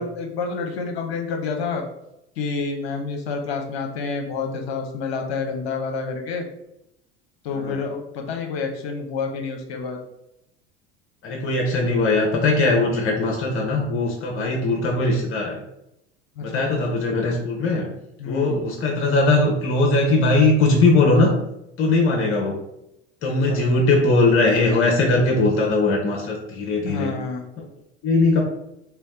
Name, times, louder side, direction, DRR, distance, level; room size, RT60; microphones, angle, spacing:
voice 1, 0.0-1.8 2.4-6.5 7.4-10.0 16.4-16.7 18.2-18.6 23.3-23.7 26.8-27.5, left 4 dB, 70° left, 3 dB, 0.8 m, -28 dB
voice 2, 11.2-15.6 16.4-17.9 18.2-21.3 21.8-22.6 23.2-27.1 28.0-28.4, left 2 dB, 40° left, 0 dB, 1.0 m, -20 dB
3.2 x 3.0 x 3.7 m, 0.84 s
figure-of-eight pair, 70°, 32 cm